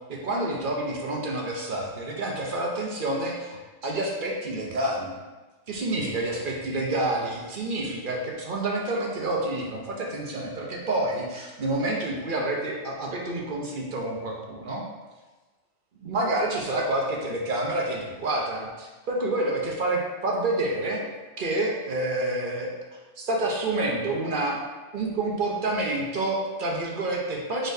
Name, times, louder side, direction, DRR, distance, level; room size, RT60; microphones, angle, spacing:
voice 1, 0.1-5.1 5.7-14.8 16.0-21.0 21.4-22.7 23.2-24.6 24.9-27.7, right 2 dB, 50° right, -1 dB, 0.7 m, -28 dB
5.0 x 4.1 x 2.6 m, 1.2 s
omnidirectional pair, 1.4 m